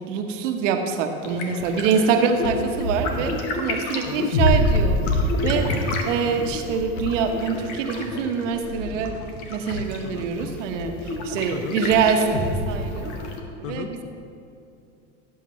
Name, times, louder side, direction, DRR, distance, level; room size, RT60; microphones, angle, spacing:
voice 1, 0.0-5.7 6.1-9.2 9.5-10.9 11.2-13.1 13.6-14.0, right 6 dB, 75° right, 5 dB, 1.3 m, -24 dB
sound 1, 1.2-13.4, left 1 dB, 70° left, 1.7 m, -27 dB
sound 2, 2.4-3.4 4.7-5.7 7.0-7.9 9.7-10.6 11.9-12.7, left 3 dB, 90° left, 0.9 m, -37 dB
voice 2, 4.1-4.3 10.0-10.3 11.5-11.8 13.6-13.9, left 8 dB, 35° left, 10 dB, 0.8 m, -35 dB
17.5 x 8.5 x 3.2 m, 2.6 s
hypercardioid pair, 85°, 38 cm